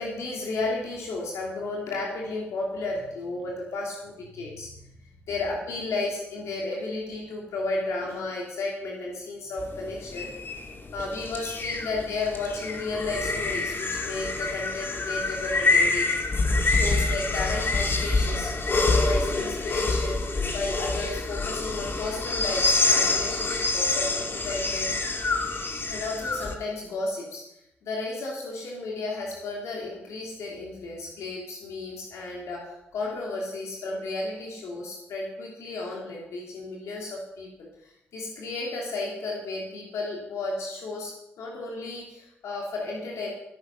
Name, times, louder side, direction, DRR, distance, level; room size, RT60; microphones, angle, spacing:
voice 1, 0.0-4.7 5.3-10.3 10.9-16.3 16.6-20.2 20.5-25.0 25.9-27.4 27.8-43.3, left 2 dB, 80° left, -2 dB, 2.8 m, -33 dB
sound 1, 9.6-26.5, left 3 dB, 45° left, 2.3 m, -26 dB
16.0 x 9.3 x 5.7 m, 0.84 s
supercardioid pair, 45°, 5 cm